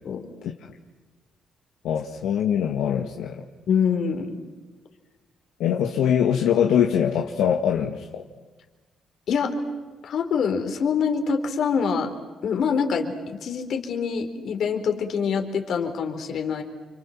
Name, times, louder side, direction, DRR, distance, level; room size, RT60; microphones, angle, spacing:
voice 1, 1.8-3.4 5.6-8.2, left 8 dB, 85° left, 2 dB, 1.8 m, -23 dB
voice 2, 3.7-4.4 9.3-9.6 10.0-12.1 12.4-16.6, left 6 dB, 65° left, 5 dB, 4.3 m, -25 dB
30.0 x 26.0 x 7.5 m, 1.3 s
cardioid pair, 90°, 0 cm